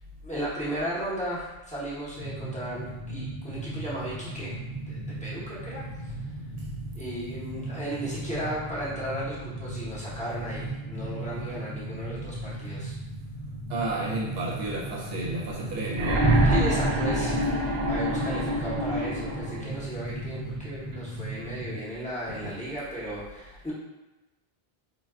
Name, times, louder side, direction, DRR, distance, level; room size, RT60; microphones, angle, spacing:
voice 1, 0.2-4.6 4.9-5.8 7.0-12.9 16.4-23.7, equal, 10° left, 0.7 m, -35 dB
sound 1, 2.2-21.8, right 2 dB, 70° left, 0.8 m, -37 dB
voice 2, 5.0-5.9 6.3-7.0 13.7-16.5 22.3-22.6, right 2 dB, 75° right, 0.8 m, -34 dB
sound 2, 15.9-19.7 20.9-21.0, right 1 dB, 50° right, 0.4 m, -25 dB
2.2 x 2.2 x 3.4 m
omnidirectional pair, 1.0 m